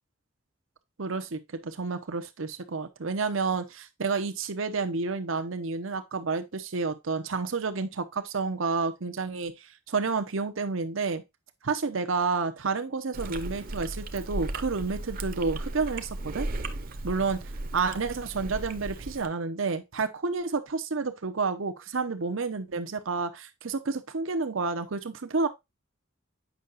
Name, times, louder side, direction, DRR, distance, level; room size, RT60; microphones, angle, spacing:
voice 1, 1.0-11.2 11.6-16.5 17.0-17.4 17.7-25.5, right 4 dB, 85° right, 0.8 m, -30 dB
Chewing mastication, 13.1-19.3, right 2 dB, 45° right, 0.7 m, -36 dB
8.3 x 5.6 x 2.5 m
head